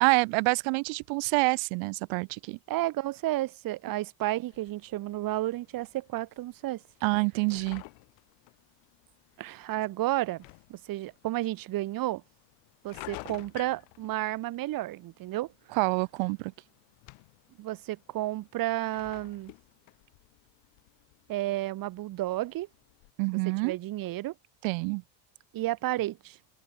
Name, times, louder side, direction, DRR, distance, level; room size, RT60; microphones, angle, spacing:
voice 1, 0.0-2.6 7.0-7.8 15.7-16.5 23.2-23.8 24.6-25.0, right 36 dB, 85° right, 0.7 m, -27 dB
voice 2, 2.7-6.8 9.4-10.4 10.7-12.2 12.8-15.5 17.6-19.5 21.3-22.7 23.6-24.3 25.5-26.4, right 16 dB, 50° right, 1.5 m, -32 dB
sound 1, 4.5-23.1, left 32 dB, 90° left, 4.3 m, -53 dB
cardioid pair, 150°, 45 cm